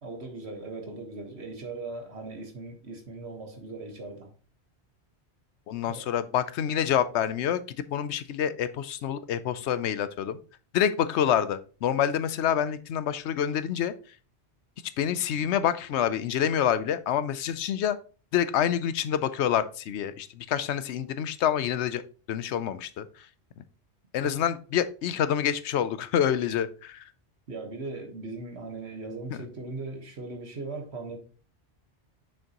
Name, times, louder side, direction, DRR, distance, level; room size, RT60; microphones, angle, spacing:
voice 1, 0.0-4.3 5.8-6.1 27.5-31.2, right 3 dB, 70° right, 1.6 m, -39 dB
voice 2, 5.7-7.6 7.9-10.4 10.7-13.9 15.0-18.0 18.3-22.0 22.3-23.3 24.1-27.1, left 9 dB, 80° left, 0.9 m, -27 dB
6.4 x 6.4 x 2.9 m
omnidirectional pair, 1.1 m